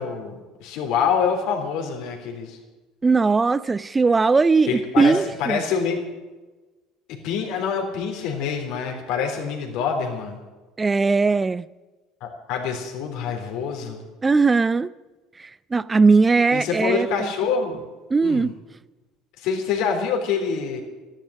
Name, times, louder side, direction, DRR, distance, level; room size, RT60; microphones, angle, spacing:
voice 1, 0.0-2.6 4.7-6.1 7.2-10.4 12.2-14.0 16.5-17.8 18.2-18.5 19.4-20.8, left 6 dB, 65° left, 3.6 m, -26 dB
voice 2, 3.0-5.6 10.8-11.7 14.2-14.9 15.4-17.1 18.1-18.5, right 4 dB, 20° right, 0.5 m, -19 dB
14.0 x 11.5 x 8.6 m
hypercardioid pair, 70°, 0 cm